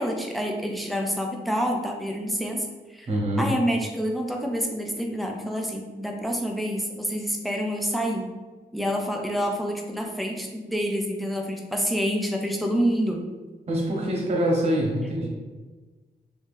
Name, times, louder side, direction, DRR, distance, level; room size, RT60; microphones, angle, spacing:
voice 1, 0.0-3.1 3.4-8.3 8.7-13.2, equal, ahead, 1 dB, 0.3 m, -27 dB
voice 2, 3.1-3.5 13.7-15.3, right 1 dB, 40° right, -3 dB, 0.9 m, -24 dB
3.3 x 2.7 x 3.3 m, 1.3 s
wide cardioid pair, 175°, 17 cm